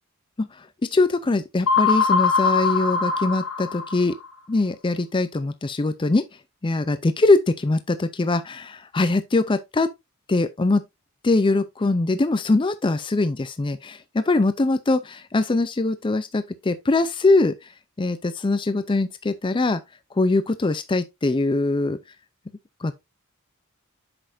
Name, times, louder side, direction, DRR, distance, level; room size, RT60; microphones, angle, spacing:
voice 1, 0.9-4.2 4.5-6.2 6.6-9.9 10.3-10.8 11.2-17.7 18.0-19.8 20.2-22.0 22.8-22.9, left 2 dB, 20° left, 0.4 m, -22 dB
sound 1, 1.7-4.3, left 5 dB, 80° left, 2.4 m, -22 dB
7.9 x 6.3 x 2.5 m
head